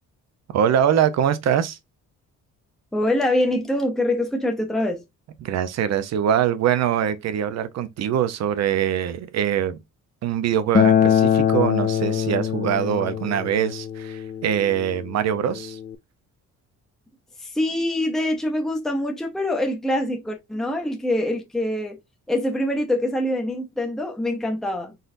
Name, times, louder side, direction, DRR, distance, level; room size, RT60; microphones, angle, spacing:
voice 1, 0.5-1.8 5.4-9.8 10.2-15.8, right 9 dB, 60° right, 0.7 m, -23 dB
voice 2, 2.9-5.0 17.4-22.0 22.3-24.9, left 1 dB, ahead, 0.8 m, -24 dB
Acoustic guitar, 10.7-15.9, left 9 dB, 25° left, 0.4 m, -23 dB
4.1 x 3.9 x 2.6 m
cardioid pair, 140°, 31 cm